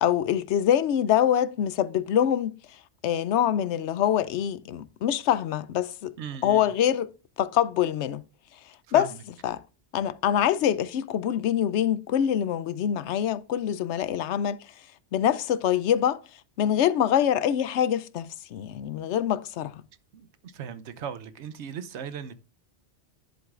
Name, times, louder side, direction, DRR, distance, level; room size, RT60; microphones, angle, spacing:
voice 1, 0.0-2.6 3.0-6.1 6.4-7.1 7.4-8.2 8.9-9.1 9.4-9.6 9.9-14.6 15.1-16.2 16.6-19.8, left 10 dB, 80° left, 0.9 m, -25 dB
voice 2, 6.2-6.7 8.9-9.2 20.1-22.3, right 7 dB, 90° right, 1.0 m, -38 dB
10.5 x 7.8 x 2.5 m
omnidirectional pair, 1.1 m